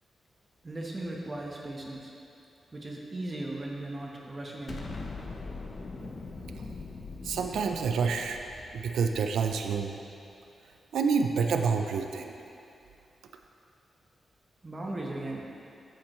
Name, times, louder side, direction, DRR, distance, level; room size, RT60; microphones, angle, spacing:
voice 1, 0.6-2.1 2.7-5.0 14.6-15.4, right 1 dB, 30° right, -2 dB, 1.1 m, -37 dB
Explosion, 4.7-9.9, left 3 dB, 55° left, 0.8 m, -42 dB
voice 2, 7.2-8.4 8.7-9.9 10.9-12.3, right 5 dB, 90° right, 5 dB, 0.4 m, -28 dB
8.8 x 7.3 x 3.1 m, 2.7 s
cardioid pair, 70°, 0 cm